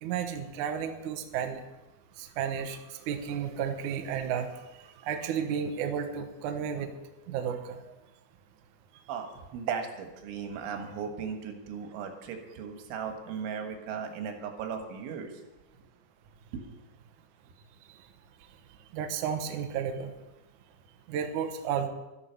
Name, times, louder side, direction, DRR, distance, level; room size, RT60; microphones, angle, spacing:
voice 1, 0.0-1.6 2.2-2.8 3.1-4.5 5.0-6.9 7.3-7.8 18.9-20.1 21.1-21.9, right 8 dB, 75° right, 5 dB, 1.8 m, -32 dB
voice 2, 9.1-9.8 10.2-15.3 16.5-16.6, right 7 dB, 90° right, 5 dB, 3.9 m, -37 dB
12.5 x 11.5 x 5.8 m, 1.0 s
omnidirectional pair, 5.3 m